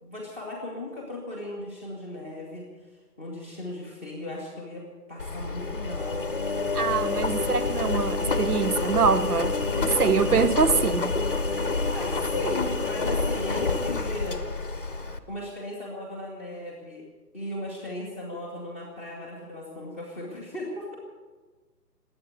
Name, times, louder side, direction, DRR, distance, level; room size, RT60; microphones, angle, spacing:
voice 1, 0.0-2.7 3.2-6.3 11.9-14.4 15.3-17.0 17.3-20.9, left 1 dB, 10° right, 1.1 m, -36 dB
Engine, 5.2-15.2, left 3 dB, 35° left, 0.8 m, -28 dB
voice 2, 6.7-11.1, right 6 dB, 65° right, 0.8 m, -24 dB
21.0 x 8.6 x 8.0 m
hypercardioid pair, 175°, 50 cm